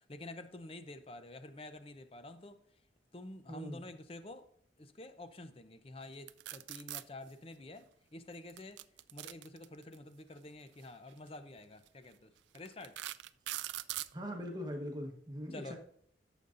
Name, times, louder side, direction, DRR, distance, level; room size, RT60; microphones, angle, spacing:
voice 1, 0.0-2.6 3.1-4.5 4.8-8.8 9.1-13.0 15.5-15.8, left 2 dB, 30° left, 10 dB, 0.6 m, -49 dB
voice 2, 3.5-3.8 14.1-15.8, equal, 20° right, 2 dB, 1.2 m, -41 dB
sound 1, 6.3-7.0 8.5-10.0 11.1-11.3 11.9-12.0 12.6-14.1, right 15 dB, 80° right, 0.3 m, -41 dB
13.5 x 7.0 x 2.6 m, 0.65 s
head